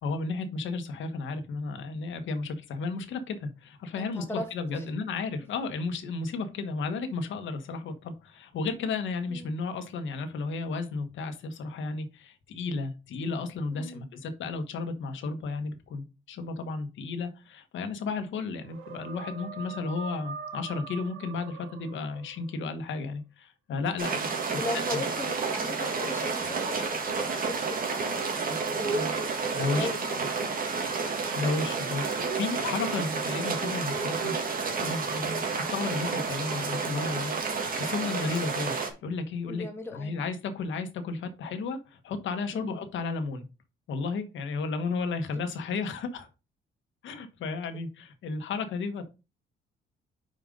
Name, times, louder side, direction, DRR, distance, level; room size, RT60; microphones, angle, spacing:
voice 1, 0.0-24.3 24.9-25.0 29.5-30.2 31.3-37.4 37.7-39.6 39.9-43.4 43.9-46.3 47.0-49.2, left 4 dB, 75° left, 1.4 m, -33 dB
voice 2, 4.0-4.9 9.3-9.4 13.7-14.0 24.6-30.8 39.5-40.2 42.5-42.8 45.3-45.4, left 2 dB, 10° left, 2.1 m, -39 dB
sound 1, 18.6-22.7, right 5 dB, 85° right, 1.3 m, -43 dB
sound 2, 24.0-38.9, right 4 dB, 45° right, 1.7 m, -30 dB
5.3 x 4.5 x 5.2 m
cardioid pair, 90°, 20 cm